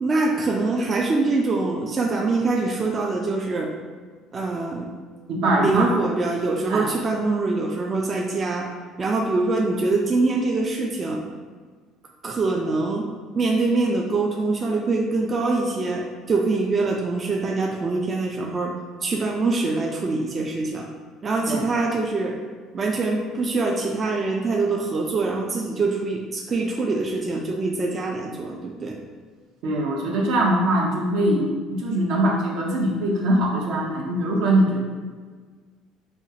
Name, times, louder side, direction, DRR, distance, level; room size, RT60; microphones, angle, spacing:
voice 1, 0.0-3.7 4.3-4.9 5.6-8.7 9.0-11.2 12.2-13.1 13.4-18.7 19.0-20.9 21.2-22.4 22.7-29.0, right 3 dB, 30° right, 1 dB, 0.3 m, -24 dB
voice 2, 5.3-5.9 6.7-6.9 21.5-21.6 29.6-34.8, right 1 dB, 70° right, -1 dB, 0.7 m, -22 dB
4.3 x 2.4 x 2.7 m, 1.5 s
supercardioid pair, 100°, 0 cm